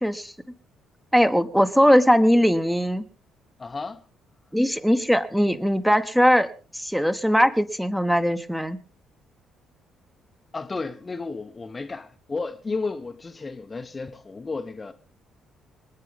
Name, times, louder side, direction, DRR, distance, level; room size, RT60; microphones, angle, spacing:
voice 1, 0.0-0.3 1.1-3.0 4.5-6.5 6.7-8.8, equal, ahead, 1.4 m, -20 dB
voice 2, 3.6-4.0 10.5-14.9, left 3 dB, 25° left, 1.1 m, -33 dB
27.0 x 9.7 x 3.7 m
figure-of-eight pair, 45°, 0 cm